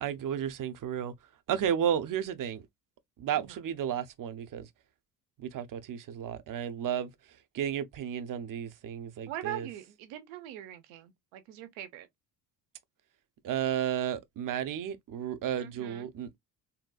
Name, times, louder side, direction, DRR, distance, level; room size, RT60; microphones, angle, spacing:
voice 1, 0.0-1.1 1.5-2.6 3.2-4.7 5.4-7.1 7.5-9.7 13.4-16.4, right 9 dB, 45° right, 0.7 m, -33 dB
voice 2, 9.3-12.1 15.6-16.1, right 12 dB, 80° right, 0.9 m, -42 dB
4.1 x 2.1 x 2.3 m
supercardioid pair, 70°, 46 cm